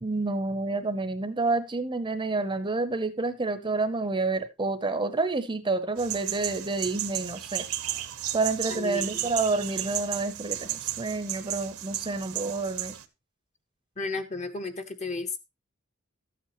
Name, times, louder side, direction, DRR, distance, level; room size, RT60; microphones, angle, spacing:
voice 1, 0.0-7.7 8.3-13.0, right 3 dB, 20° right, 0.8 m, -29 dB
sound 1, 6.0-13.0, right 13 dB, 70° right, 0.9 m, -34 dB
voice 2, 8.7-9.2 14.0-15.3, left 3 dB, 35° left, 1.2 m, -33 dB
13.0 x 8.5 x 3.0 m
head